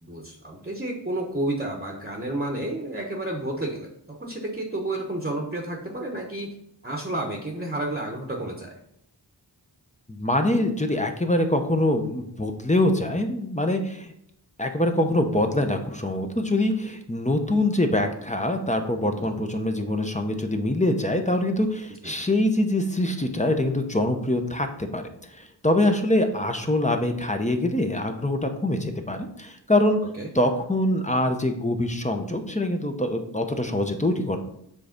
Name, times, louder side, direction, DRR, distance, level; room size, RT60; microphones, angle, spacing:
voice 1, 0.0-6.5 6.8-8.7 19.1-19.4 22.0-22.1 30.2-30.3, right 1 dB, 20° right, 0 dB, 1.0 m, -31 dB
voice 2, 10.1-14.1 14.6-30.0 30.3-34.4, left 1 dB, 15° left, 5 dB, 0.9 m, -24 dB
7.6 x 3.3 x 5.2 m, 0.74 s
wide cardioid pair, 55°, 43 cm